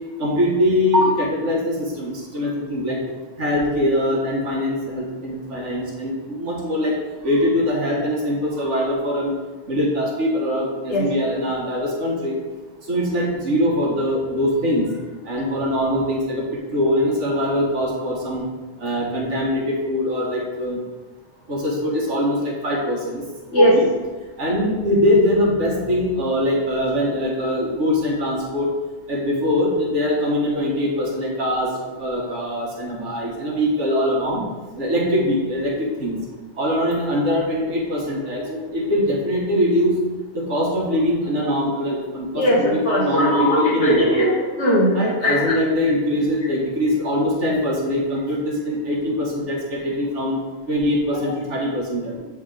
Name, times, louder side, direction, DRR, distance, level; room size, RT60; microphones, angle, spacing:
voice 1, 0.2-3.0 3.4-6.9 7.2-9.3 9.7-12.4 12.9-14.9 15.2-16.4 16.7-18.4 18.8-20.8 21.5-22.4 22.6-23.2 23.6-23.9 24.4-28.7 29.1-31.7 32.0-34.4 34.8-35.7 36.0-36.2 36.6-39.9 40.3-44.0 44.9-50.4 50.7-52.1, left 1 dB, 65° right, -3 dB, 1.6 m, -22 dB
voice 2, 42.3-45.0 45.2-45.5, equal, 60° left, -5 dB, 1.7 m, -19 dB
7.6 x 3.5 x 3.8 m, 1.3 s
omnidirectional pair, 1.4 m